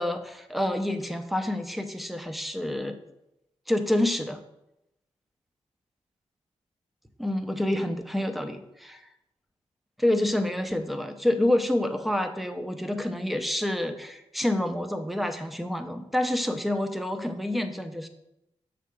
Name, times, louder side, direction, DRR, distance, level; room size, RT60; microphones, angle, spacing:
voice 1, 0.0-3.0 3.7-4.4 7.2-9.1 10.0-18.1, left 1 dB, ahead, 7 dB, 0.7 m, -28 dB
6.3 x 3.4 x 5.0 m, 0.87 s
cardioid pair, 60°, 12 cm